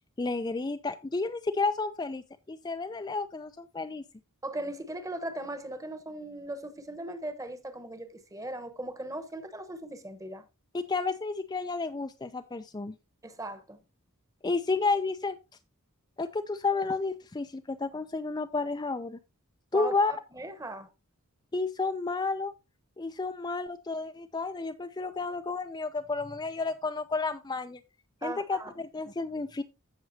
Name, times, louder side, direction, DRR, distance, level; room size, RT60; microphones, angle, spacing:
voice 1, 0.2-4.0 10.7-12.9 14.4-15.4 16.2-19.2 19.7-20.1 21.5-22.5 23.0-27.8 28.2-29.6, left 3 dB, 20° left, 0.4 m, -31 dB
voice 2, 4.4-10.4 13.2-13.8 19.7-19.9 20.3-20.9 28.2-28.7, right 1 dB, 15° right, 1.1 m, -38 dB
15.5 x 6.0 x 2.7 m
head